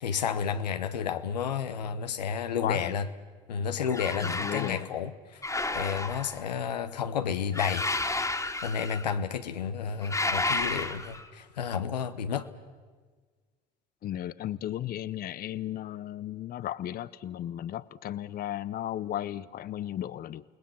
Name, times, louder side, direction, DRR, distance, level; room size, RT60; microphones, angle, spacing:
voice 1, 0.0-3.1 3.5-5.4 5.7-7.9 8.6-12.5, left 7 dB, 90° left, 10 dB, 1.0 m, -31 dB
voice 2, 2.6-2.9 4.2-4.9 14.0-20.4, left 12 dB, 45° left, 18 dB, 0.7 m, -35 dB
sound 1, 3.9-4.8 5.4-6.5 7.5-9.1 10.0-11.3, left 2 dB, 15° left, 2.1 m, -31 dB
29.0 x 19.5 x 7.1 m, 1.5 s
hypercardioid pair, 60°, 21 cm